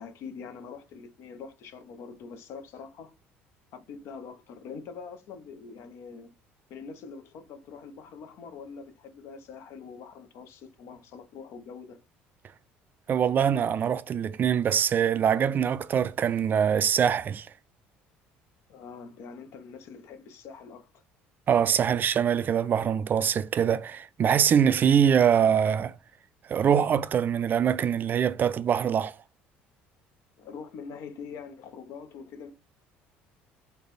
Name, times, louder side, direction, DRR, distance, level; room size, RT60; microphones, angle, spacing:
voice 1, 0.0-3.1 3.7-6.4 6.7-12.0 18.7-20.9 30.4-32.5, left 5 dB, 65° left, 0.7 m, -44 dB
voice 2, 13.1-17.5 21.5-26.0 26.5-29.2, right 8 dB, 40° right, 0.3 m, -23 dB
3.3 x 2.2 x 4.1 m
supercardioid pair, 85°, 5 cm